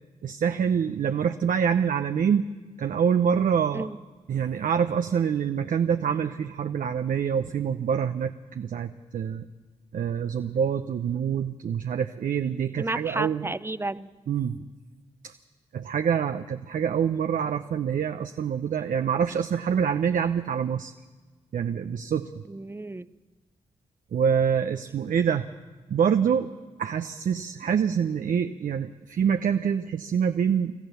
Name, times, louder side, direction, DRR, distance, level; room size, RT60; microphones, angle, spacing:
voice 1, 0.2-2.5 2.8-3.9 4.3-9.5 9.9-13.5 14.3-14.7 15.2-15.3 15.7-20.9 21.5-22.4 24.1-25.5 25.9-26.5 26.8-30.7, right 7 dB, 65° right, 8 dB, 0.7 m, -26 dB
voice 2, 12.8-14.1 22.5-23.1, right 2 dB, 15° right, 15 dB, 0.7 m, -32 dB
26.5 x 14.0 x 6.9 m, 1.3 s
supercardioid pair, 40°, 15 cm